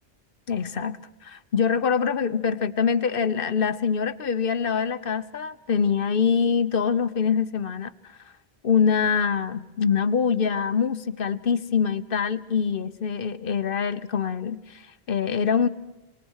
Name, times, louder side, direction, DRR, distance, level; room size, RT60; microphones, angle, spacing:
voice 1, 0.5-8.2 8.6-15.7, left 6 dB, 60° left, 13 dB, 1.1 m, -24 dB
27.0 x 20.0 x 6.4 m, 1.1 s
omnidirectional pair, 1.0 m